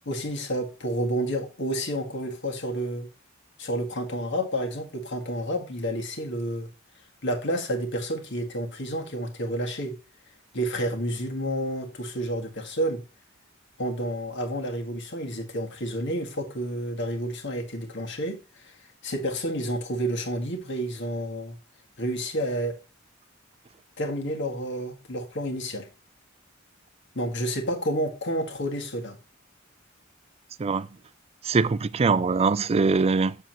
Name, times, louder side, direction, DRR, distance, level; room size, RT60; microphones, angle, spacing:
voice 1, 0.1-3.1 3.6-6.7 7.2-10.0 10.5-13.0 13.8-18.8 19.0-21.6 22.0-22.8 24.0-25.9 27.1-29.2, equal, 60° left, 1.9 m, -30 dB
voice 2, 31.4-33.4, right 4 dB, 30° right, 0.4 m, -22 dB
7.3 x 7.2 x 3.0 m
head